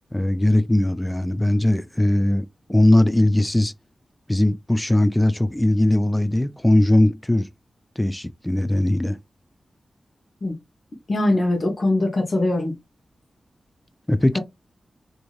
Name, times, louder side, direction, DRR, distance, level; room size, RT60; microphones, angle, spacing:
voice 1, 0.1-3.7 4.3-7.5 8.0-9.2 14.1-14.4, left 1 dB, 10° left, 0.3 m, -19 dB
voice 2, 11.1-12.7, left 2 dB, 45° left, 0.8 m, -21 dB
3.1 x 2.6 x 2.4 m
wide cardioid pair, 100°, 0 cm